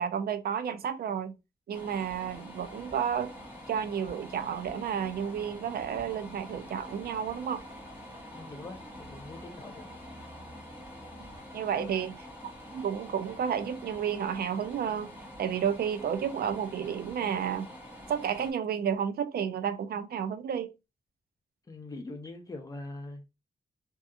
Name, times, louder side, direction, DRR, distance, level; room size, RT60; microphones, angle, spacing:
voice 1, 0.0-1.4 1.7-3.3 3.7-7.6 11.2-11.3 11.5-12.2 12.7-15.1 15.4-17.7 18.1-20.7, right 8 dB, 75° right, 0.4 m, -31 dB
sound 1, 1.7-18.5, left 1 dB, 10° right, 1.0 m, -46 dB
voice 2, 8.3-9.9 11.7-12.0 21.7-23.3, left 2 dB, 20° left, 0.5 m, -43 dB
2.6 x 2.5 x 2.3 m
wide cardioid pair, 160°, 16 cm